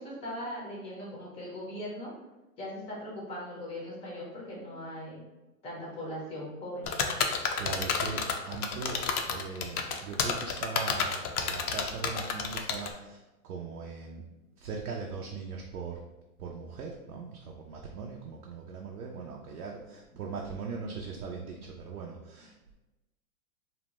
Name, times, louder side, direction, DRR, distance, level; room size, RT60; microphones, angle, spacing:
voice 1, 0.0-2.1 2.6-5.2 5.6-6.9, left 1 dB, 15° left, -5 dB, 0.5 m, -39 dB
sound 1, 6.9-12.9, left 6 dB, 75° left, 0.6 m, -30 dB
voice 2, 7.6-13.2 13.5-14.3 14.6-16.0 16.4-22.7, right 5 dB, 85° right, -1 dB, 0.5 m, -40 dB
2.6 x 2.1 x 2.9 m, 1.0 s
hypercardioid pair, 120°, 45 cm